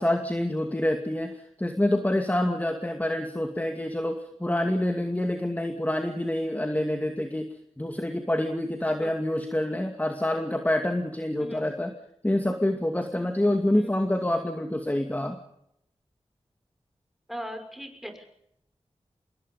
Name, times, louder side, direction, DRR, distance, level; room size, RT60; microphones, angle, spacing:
voice 1, 0.0-7.5 7.8-11.9 12.2-15.4, left 1 dB, 15° left, 5 dB, 2.4 m, -27 dB
voice 2, 11.4-11.7 13.7-14.0 17.3-18.2, equal, ahead, 5 dB, 5.9 m, -39 dB
26.5 x 22.0 x 5.5 m, 0.76 s
wide cardioid pair, 70°, 11 cm